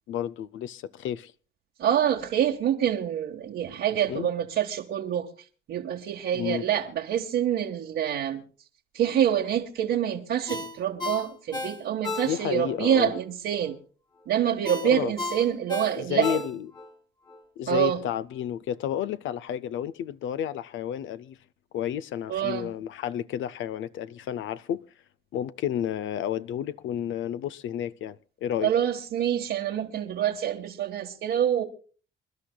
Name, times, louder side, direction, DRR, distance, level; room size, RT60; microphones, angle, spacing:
voice 1, 0.1-1.3 4.1-4.3 6.3-6.7 12.2-13.1 14.8-15.1 16.0-16.7 17.6-21.4 21.7-24.8 25.3-28.7, left 10 dB, 75° left, 0.6 m, -31 dB
voice 2, 1.8-5.3 5.7-8.4 8.9-13.8 14.3-16.5 17.7-18.0 22.3-22.7 28.6-31.6, right 10 dB, 75° right, 1.4 m, -26 dB
Ringtone, 10.5-12.7 13.1-13.2 14.7-16.9 17.3-17.4, left 2 dB, 20° left, 1.7 m, -34 dB
27.5 x 11.5 x 2.2 m
cardioid pair, 90°, 20 cm